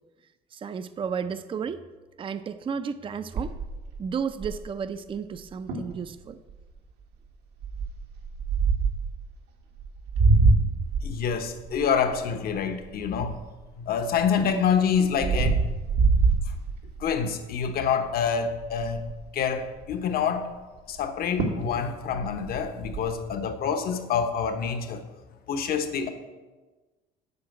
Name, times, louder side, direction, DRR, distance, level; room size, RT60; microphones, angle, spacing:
voice 1, 0.5-1.9 2.2-3.6 4.0-6.4, right 6 dB, 30° right, 11 dB, 0.5 m, -33 dB
sound 1, 3.4-4.8 5.4-5.5 5.7-6.0 6.5-6.8 7.6-9.1 9.8-13.7 14.1-17.2 17.6-17.9 18.2-18.3 18.6-19.3 21.0-21.1 21.4-21.7 22.0-23.0, right 4 dB, 80° right, 1.7 m, -25 dB
voice 2, 11.0-13.4 13.8-15.6 17.0-19.1 19.3-20.5 20.9-25.0 25.5-26.1, left 6 dB, 65° left, 7 dB, 1.1 m, -27 dB
8.4 x 5.7 x 7.8 m, 1.2 s
cardioid pair, 110°, 17 cm